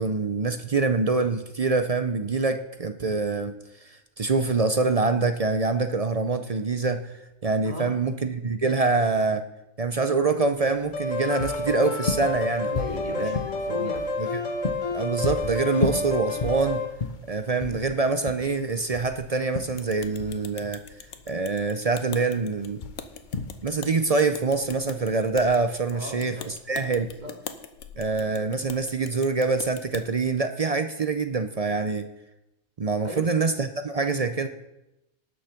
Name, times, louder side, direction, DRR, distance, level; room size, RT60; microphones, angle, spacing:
voice 1, 0.0-3.6 3.8-7.1 7.4-9.4 9.8-12.7 13.2-13.4 13.8-13.9 14.2-14.4 14.9-16.8 17.3-20.8 21.3-22.8 23.6-27.1 28.0-32.1 32.8-34.5, right 4 dB, 45° right, 9 dB, 0.4 m, -25 dB
voice 2, 7.6-8.0 12.7-14.1 25.9-26.5 27.2-27.3 33.0-33.3, equal, 30° right, 1 dB, 2.2 m, -36 dB
sound 1, 10.5-26.2, left 4 dB, 40° left, 0.8 m, -35 dB
sound 2, 10.9-16.9, left 3 dB, 60° left, 2.2 m, -30 dB
sound 3, 19.8-30.0, left 7 dB, 80° left, 1.3 m, -42 dB
18.0 x 6.5 x 5.8 m, 0.92 s
omnidirectional pair, 1.5 m